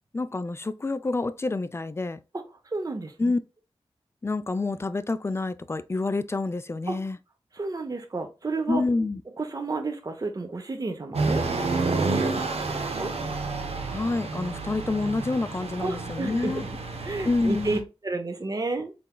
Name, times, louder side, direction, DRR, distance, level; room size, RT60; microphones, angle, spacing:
voice 1, 0.1-2.2 3.2-3.4 4.2-7.2 8.7-9.2 13.9-16.6 17.2-17.9, left 3 dB, 25° left, 0.4 m, -28 dB
voice 2, 2.3-3.3 6.9-7.0 7.5-8.8 9.4-11.5 11.9-13.1 15.8-16.7 17.0-18.9, right 3 dB, 35° right, 0.7 m, -31 dB
sound 1, 11.1-17.8, right 3 dB, 80° right, 0.8 m, -30 dB
4.3 x 3.8 x 2.2 m
wide cardioid pair, 80°, 10 cm